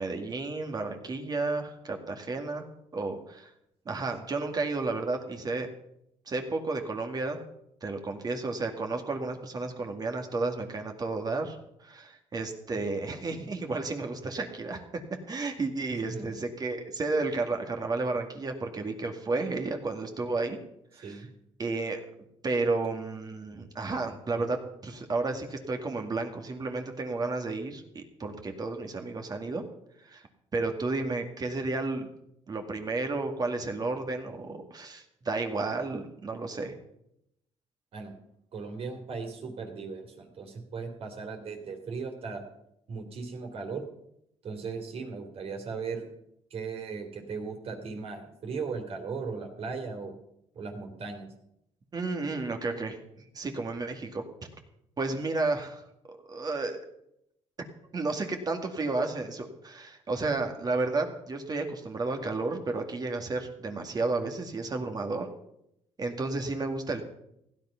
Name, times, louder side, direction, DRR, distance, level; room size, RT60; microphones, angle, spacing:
voice 1, 0.0-2.7 2.9-3.5 3.9-5.7 6.3-7.4 7.8-20.6 20.9-21.2 21.6-22.0 22.4-29.6 30.0-30.2 30.5-32.1 32.5-36.7 51.9-53.0 53.3-54.2 55.0-55.8 56.3-56.8 57.9-65.3 66.0-67.0, right 3 dB, 35° right, 4 dB, 2.1 m, -32 dB
voice 2, 16.0-16.3 21.0-21.3 37.9-38.1 38.5-42.4 42.9-43.8 44.4-46.1 46.5-50.1 50.5-51.3, right 5 dB, 60° right, 3 dB, 3.3 m, -37 dB
16.0 x 10.5 x 5.8 m, 0.79 s
cardioid pair, 110°, 12 cm